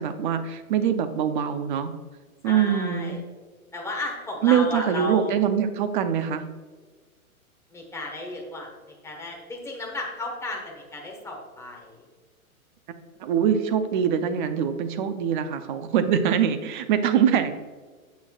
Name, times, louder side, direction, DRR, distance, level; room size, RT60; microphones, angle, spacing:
voice 1, 0.0-1.9 2.4-3.2 4.4-6.5 13.2-17.6, right 8 dB, 35° right, 9 dB, 0.6 m, -23 dB
voice 2, 2.4-3.2 3.7-5.3 7.7-12.0, left 2 dB, 5° left, -1 dB, 1.3 m, -34 dB
8.8 x 8.0 x 2.4 m, 1.4 s
hypercardioid pair, 145°, 44 cm